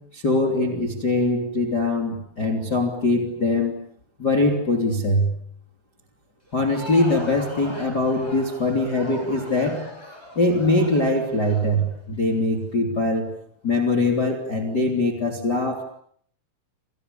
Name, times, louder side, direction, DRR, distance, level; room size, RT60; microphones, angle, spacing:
voice 1, 0.1-3.8 4.2-5.3 6.5-9.8 10.3-13.3 13.6-15.8, left 2 dB, 25° left, 3 dB, 2.9 m, -22 dB
Crowd, 6.5-12.4, equal, 5° right, 5.7 m, -39 dB
29.0 x 28.5 x 6.9 m, 0.64 s
omnidirectional pair, 5.6 m